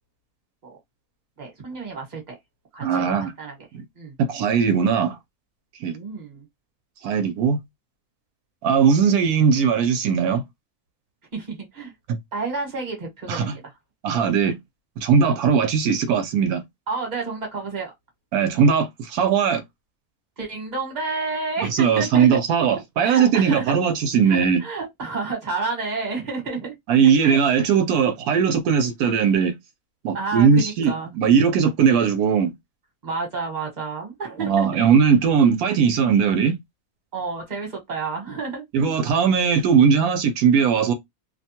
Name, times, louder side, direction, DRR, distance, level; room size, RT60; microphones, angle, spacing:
voice 1, 1.4-2.3 2.7-3.7 4.0-4.1 5.9-6.4 11.3-11.9 12.3-13.7 16.9-17.9 20.4-22.3 23.0-23.7 24.3-26.7 27.2-27.4 30.1-31.1 33.0-34.8 37.1-38.6, right 4 dB, 30° right, 1.2 m, -30 dB
voice 2, 2.8-3.3 3.7-3.8 4.2-5.2 5.8-5.9 7.0-7.6 8.6-10.4 13.3-13.5 14.0-14.6 15.0-16.6 18.3-19.6 21.7-24.6 26.9-29.6 30.0-32.5 34.4-36.6 38.7-40.9, right 6 dB, 90° right, 1.1 m, -19 dB
2.7 x 2.2 x 2.7 m
omnidirectional pair, 1.5 m